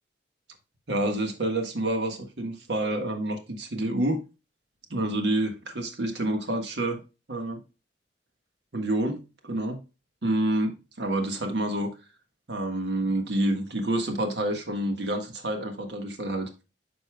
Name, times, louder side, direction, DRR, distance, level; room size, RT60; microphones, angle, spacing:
voice 1, 0.9-4.2 4.9-7.0 7.3-7.6 8.7-9.2 9.4-9.8 10.2-11.9 12.5-16.5, right 1 dB, 70° right, 5 dB, 1.5 m, -28 dB
9.6 x 5.4 x 2.2 m, 0.29 s
head